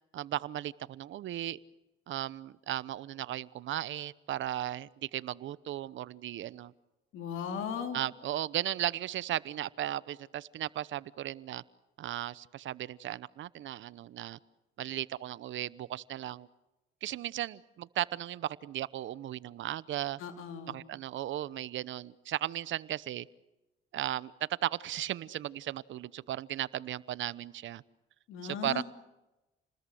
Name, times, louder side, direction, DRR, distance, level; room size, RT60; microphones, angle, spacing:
voice 1, 0.1-1.6 2.1-6.7 7.9-11.6 12.0-14.4 14.8-16.5 17.0-20.2 20.7-23.3 23.9-27.8 28.4-28.8, right 13 dB, 75° right, 19 dB, 0.9 m, -36 dB
voice 2, 7.1-8.0 20.2-20.8 28.3-28.8, left 7 dB, 85° left, 6 dB, 3.8 m, -37 dB
29.5 x 20.5 x 7.8 m, 1.0 s
cardioid pair, 90°, 20 cm